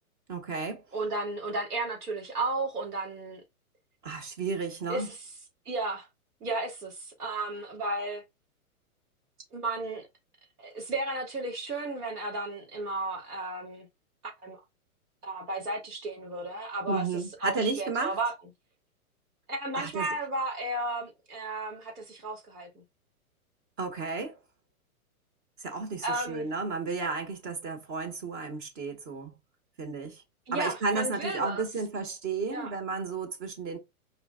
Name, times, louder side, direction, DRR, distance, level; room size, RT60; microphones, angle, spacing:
voice 1, 0.3-0.8 4.0-5.1 16.9-18.1 19.7-20.1 23.8-24.4 25.6-29.3 29.8-30.2 30.5-33.8, right 4 dB, 35° right, 1.5 m, -33 dB
voice 2, 0.9-3.4 4.9-5.2 5.6-6.1 6.4-8.2 9.5-10.1 10.6-13.9 14.4-14.6 15.2-17.0 17.4-18.3 19.5-22.8 26.0-26.5 30.5-31.6 32.5-32.7, right 2 dB, 85° right, 3.3 m, -33 dB
4.8 x 3.7 x 2.5 m
hypercardioid pair, 140°, 45 cm